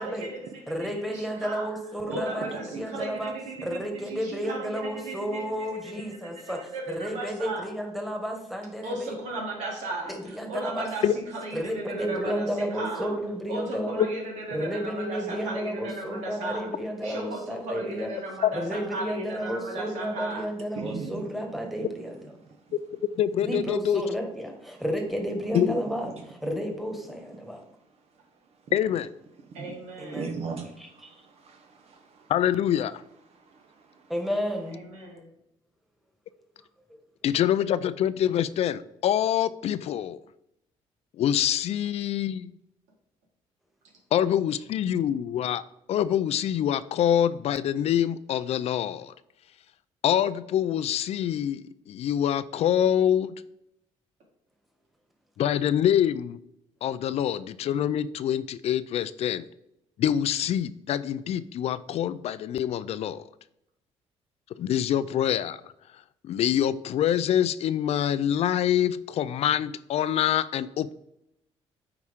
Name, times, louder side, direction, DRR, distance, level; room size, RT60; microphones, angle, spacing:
voice 1, 0.0-1.7 2.1-5.9 6.2-7.7 8.8-13.1 13.5-20.5 29.5-30.4 34.7-35.3, right 2 dB, 85° right, -1 dB, 2.3 m, -36 dB
voice 2, 0.7-3.3 3.6-6.6 6.9-9.2 10.0-10.9 11.5-14.1 14.5-18.1 18.5-22.2 23.4-27.6 30.0-30.4 30.8-31.1 34.1-34.8, equal, ahead, 2 dB, 1.6 m, -32 dB
voice 3, 20.8-21.2 21.8-21.9 25.6-25.7 29.5-29.8 30.1-32.3 33.5-33.6, right 5 dB, 60° right, 4 dB, 0.9 m, -38 dB
voice 4, 23.2-24.0 25.5-25.7 28.7-29.1 32.3-33.0 37.2-40.2 41.2-42.5 44.1-45.6 45.9-49.1 50.0-53.4 55.4-56.4 56.8-59.5 60.0-63.2 64.6-65.6 66.2-70.9, left 10 dB, 60° left, 16 dB, 0.4 m, -25 dB
8.6 x 4.9 x 3.6 m, 0.80 s
cardioid pair, 90°, 12 cm